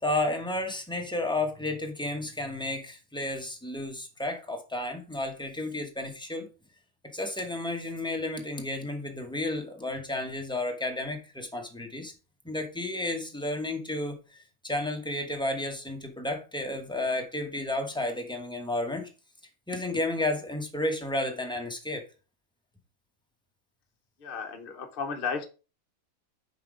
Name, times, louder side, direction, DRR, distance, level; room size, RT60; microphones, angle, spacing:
voice 1, 0.0-6.5 7.1-12.1 12.4-14.2 14.6-19.1 19.7-22.0, left 2 dB, 5° left, 3 dB, 1.0 m, -32 dB
voice 2, 24.2-25.5, left 5 dB, 45° left, 4 dB, 1.0 m, -34 dB
5.8 x 4.5 x 4.9 m, 0.33 s
omnidirectional pair, 1.4 m